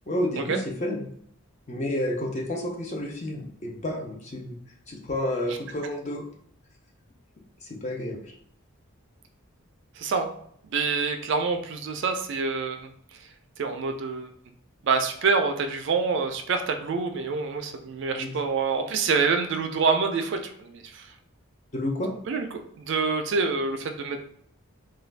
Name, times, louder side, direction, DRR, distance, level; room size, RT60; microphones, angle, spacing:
voice 1, 0.1-1.1 1.7-4.6 4.9-6.2 7.6-8.3 18.1-18.3 21.7-22.1, left 1 dB, 30° left, 0 dB, 0.5 m, -30 dB
voice 2, 10.0-10.3 10.7-12.9 13.6-14.3 14.8-21.1 22.3-22.5 22.8-24.2, right 4 dB, 55° right, 6 dB, 0.3 m, -26 dB
2.4 x 2.2 x 3.2 m, 0.66 s
head